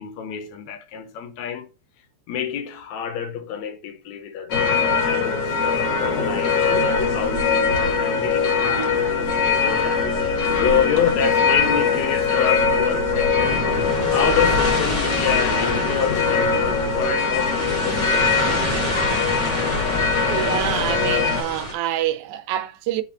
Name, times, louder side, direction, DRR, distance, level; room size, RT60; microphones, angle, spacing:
voice 1, 0.0-1.7 2.3-4.8 5.0-6.7 7.1-10.3 10.6-13.7 14.1-18.6, left 8 dB, 75° left, 1.9 m, -27 dB
sound 1, 4.5-21.4, left 5 dB, 50° left, 1.5 m, -22 dB
sound 2, 4.7-19.1, right 5 dB, 20° right, 1.0 m, -35 dB
sound 3, 13.3-21.7, left 1 dB, 20° left, 1.1 m, -28 dB
voice 2, 20.3-23.0, right 12 dB, 85° right, 2.1 m, -26 dB
7.0 x 4.9 x 2.8 m
omnidirectional pair, 3.5 m